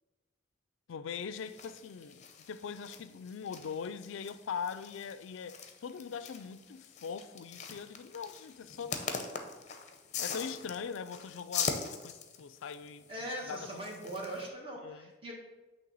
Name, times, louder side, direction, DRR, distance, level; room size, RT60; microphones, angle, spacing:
voice 1, 0.9-9.4 10.2-13.8 14.8-15.1, left 6 dB, 90° left, 0.4 m, -42 dB
sound 1, 1.3-14.5, left 5 dB, 35° left, 0.6 m, -42 dB
voice 2, 13.1-15.3, right 1 dB, 30° right, 1.4 m, -40 dB
8.5 x 3.3 x 5.4 m
head